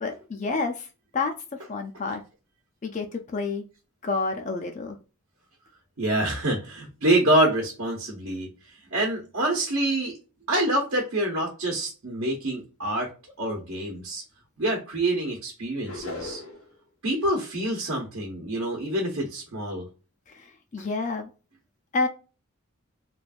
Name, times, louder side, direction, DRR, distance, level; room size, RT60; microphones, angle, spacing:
voice 1, 0.0-0.9 1.1-1.3 1.7-2.2 2.8-3.7 4.0-5.0 20.3-21.3 21.9-22.1, left 3 dB, 35° left, 5 dB, 0.4 m, -29 dB
voice 2, 6.0-8.5 8.9-10.2 10.5-13.1 13.4-14.2 14.6-16.4 17.0-19.9, right 1 dB, 65° right, -1 dB, 1.0 m, -26 dB
sound 1, 15.8-16.7, left 2 dB, 70° left, 1.3 m, -38 dB
3.2 x 2.5 x 2.3 m, 0.33 s
head